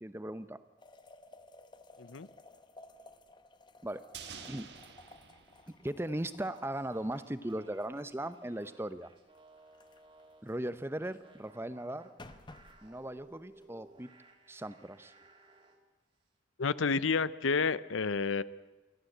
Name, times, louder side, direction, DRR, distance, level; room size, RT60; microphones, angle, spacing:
voice 1, 0.0-0.6 3.8-4.1 4.5-4.7 5.8-9.1 10.4-12.1 12.8-14.1 14.5-15.1, right 1 dB, 10° right, 13 dB, 0.7 m, -38 dB
sound 1, 0.8-11.3 11.7-13.9, left 2 dB, 25° left, 0.9 m, -57 dB
sound 2, 4.1-6.5 6.8-6.9, right 7 dB, 60° right, 1.6 m, -49 dB
sound 3, 6.2-10.6 11.0-15.8, right 2 dB, 25° right, 2.3 m, -60 dB
voice 2, 16.6-18.4, left 4 dB, 90° left, 17 dB, 0.7 m, -30 dB
24.5 x 15.0 x 7.9 m, 1.1 s
head